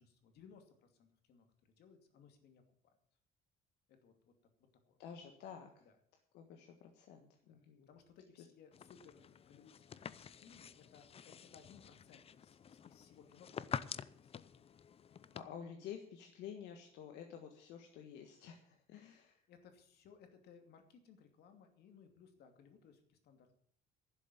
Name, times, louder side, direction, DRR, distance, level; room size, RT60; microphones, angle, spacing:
voice 1, 0.0-2.9 3.9-4.3 4.9-5.0 5.8-5.9 7.4-7.6 7.9-14.3 15.3-15.4 19.5-23.6, left 6 dB, 70° left, 6 dB, 2.6 m, -63 dB
voice 2, 5.0-5.9 6.3-7.9 15.3-19.4, left 8 dB, 90° left, 4 dB, 1.5 m, -51 dB
sound 1, 8.7-15.4, left 7 dB, 35° left, 0.6 m, -48 dB
12.0 x 7.2 x 9.1 m, 0.63 s
cardioid pair, 110°, 17 cm